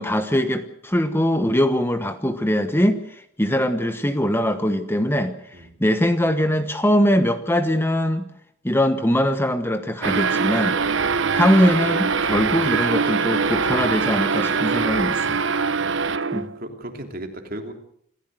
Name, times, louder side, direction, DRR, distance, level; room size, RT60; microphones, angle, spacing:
voice 1, 0.0-8.2 8.6-10.8 11.3-15.4 16.3-16.5, equal, 10° left, 9 dB, 1.2 m, -22 dB
sound 1, 10.0-16.6, right 5 dB, 60° right, 1.0 m, -22 dB
voice 2, 15.6-16.2 16.5-17.7, right 1 dB, 45° right, 5 dB, 3.2 m, -36 dB
27.0 x 15.0 x 7.9 m, 0.67 s
head